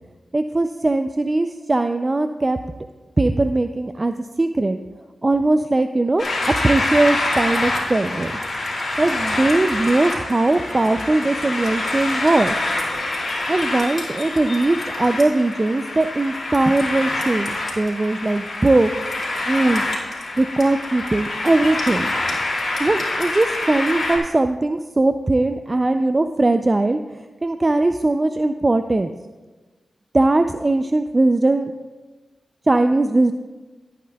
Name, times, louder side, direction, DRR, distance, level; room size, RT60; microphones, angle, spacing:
voice 1, 0.3-2.6 3.2-4.8 5.2-6.3 6.6-8.3 9.0-12.6 13.5-18.9 19.5-19.8 20.4-22.1 22.8-27.0 27.4-29.1 30.1-31.7 32.7-33.3, right 2 dB, 30° right, 8 dB, 0.4 m, -20 dB
sound 1, 6.2-24.2, left 2 dB, 60° left, 2.5 m, -26 dB
16.0 x 8.5 x 2.3 m, 1.2 s
cardioid pair, 55°, 0 cm